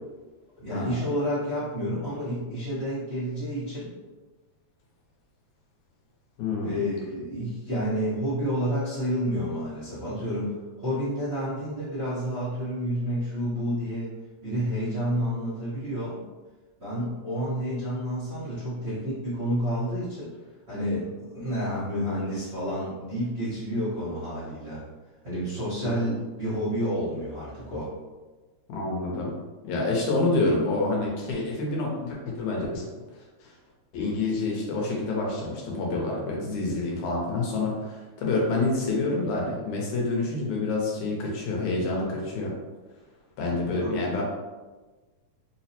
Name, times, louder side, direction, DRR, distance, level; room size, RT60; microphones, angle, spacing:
voice 1, 0.6-3.9 6.6-14.1 14.4-16.2 16.8-20.3 20.7-24.8 25.2-27.9 43.8-43.9, equal, 75° right, -12 dB, 0.6 m, -30 dB
voice 2, 6.4-6.8 25.8-26.2 28.7-29.3 29.6-32.9 33.4-33.5 33.9-42.5 43.4-44.2, left 2 dB, 80° left, -2 dB, 2.0 m, -27 dB
4.7 x 2.0 x 2.8 m, 1.3 s
omnidirectional pair, 3.4 m